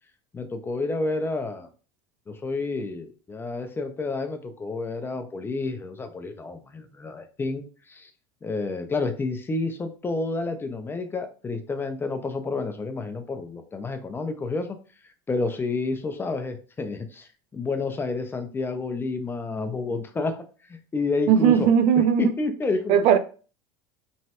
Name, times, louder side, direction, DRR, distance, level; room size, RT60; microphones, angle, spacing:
voice 1, 0.3-1.7 2.3-8.1 8.4-14.8 15.3-21.7 22.2-23.0, left 3 dB, 15° left, 0.4 m, -30 dB
voice 2, 21.3-22.3 22.9-23.2, right 8 dB, 55° right, 0.4 m, -18 dB
3.1 x 2.2 x 2.8 m
supercardioid pair, 115°, 13 cm